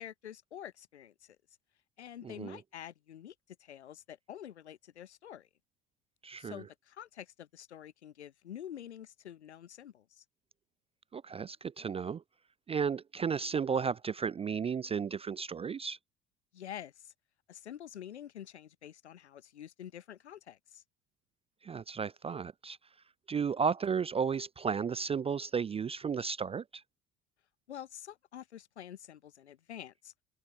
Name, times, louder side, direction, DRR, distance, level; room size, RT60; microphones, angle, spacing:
voice 1, 0.0-1.4 2.0-3.3 3.6-5.5 6.4-10.2 16.5-17.1 17.5-20.8 27.7-30.1, left 10 dB, 75° left, 5.2 m, -47 dB
voice 2, 2.2-2.6 6.2-6.6 11.1-12.2 12.7-16.0 21.6-22.8 23.3-26.8, right 6 dB, 20° right, 0.4 m, -33 dB
open air
figure-of-eight pair, 60°, 34 cm